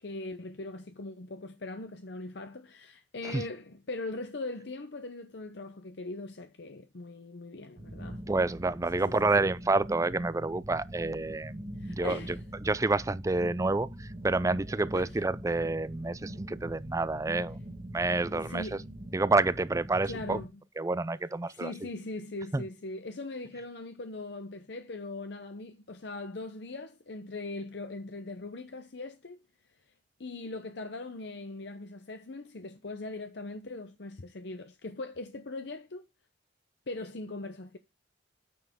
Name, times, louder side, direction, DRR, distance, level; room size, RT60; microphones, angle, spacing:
voice 1, 0.0-8.2 8.9-9.5 11.8-12.4 14.9-15.1 18.3-18.9 20.0-20.5 21.5-29.4 30.2-36.1 36.9-37.8, left 2 dB, 65° left, 0.8 m, -40 dB
sound 1, 7.8-20.5, equal, 35° right, 1.4 m, -43 dB
voice 2, 8.3-12.4 12.6-17.6 17.9-18.8 19.1-20.4 20.8-21.7 22.5-22.6, right 3 dB, 15° right, 0.4 m, -29 dB
9.5 x 6.9 x 3.6 m
head